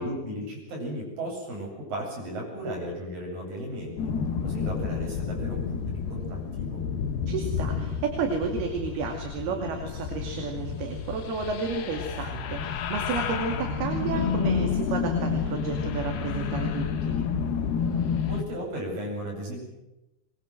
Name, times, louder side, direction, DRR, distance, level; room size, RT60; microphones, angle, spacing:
voice 1, 0.0-4.0 4.4-6.8 18.3-19.6, equal, 60° right, -1 dB, 9.8 m, -35 dB
sound 1, 4.0-18.4, left 6 dB, 80° left, 3.4 m, -30 dB
voice 2, 7.3-17.2, right 4 dB, 80° right, 3 dB, 4.4 m, -32 dB
23.0 x 22.5 x 7.7 m, 0.95 s
omnidirectional pair, 4.5 m